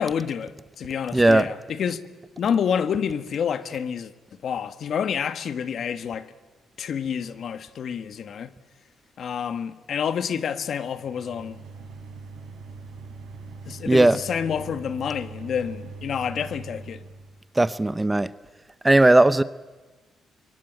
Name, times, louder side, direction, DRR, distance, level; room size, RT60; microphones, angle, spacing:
voice 1, 0.0-2.0 2.4-4.1 4.4-6.3 6.8-8.5 9.2-11.6 13.7-17.0, left 7 dB, 60° left, 1.5 m, -28 dB
voice 2, 1.1-1.4 13.9-14.2 17.6-18.3 18.8-19.4, right 2 dB, 15° right, 0.7 m, -17 dB
sound 1, 10.8-17.4, right 4 dB, 90° right, 5.7 m, -41 dB
24.5 x 23.0 x 9.1 m
cardioid pair, 90°, 0 cm